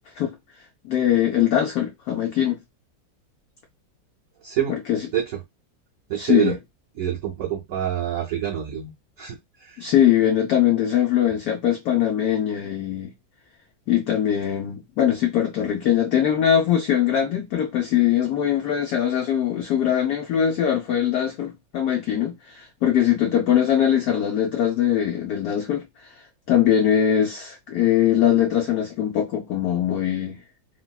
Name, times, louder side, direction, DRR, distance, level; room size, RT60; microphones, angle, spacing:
voice 1, 0.8-2.6 4.9-5.0 6.2-6.6 9.8-13.1 13.9-25.8 26.5-30.4, left 10 dB, 75° left, 0.8 m, -21 dB
voice 2, 4.4-4.7 5.1-5.4 6.1-6.6 7.0-9.8, right 11 dB, 85° right, 0.7 m, -27 dB
3.4 x 2.3 x 2.2 m
omnidirectional pair, 2.1 m